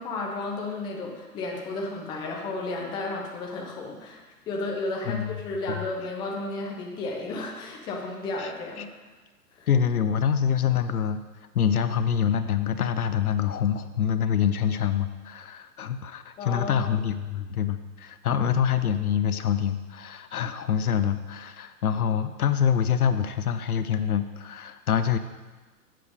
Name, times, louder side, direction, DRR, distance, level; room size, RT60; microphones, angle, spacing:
voice 1, 0.0-8.9 9.6-9.7 16.4-16.8, left 2 dB, 10° left, 0 dB, 0.6 m, -33 dB
voice 2, 5.0-5.4 5.7-5.8 8.4-8.5 8.8-8.9 9.7-11.2 11.5-25.2, left 8 dB, 65° left, 10 dB, 0.7 m, -25 dB
7.7 x 6.7 x 4.9 m, 1.3 s
figure-of-eight pair, 115°, 47 cm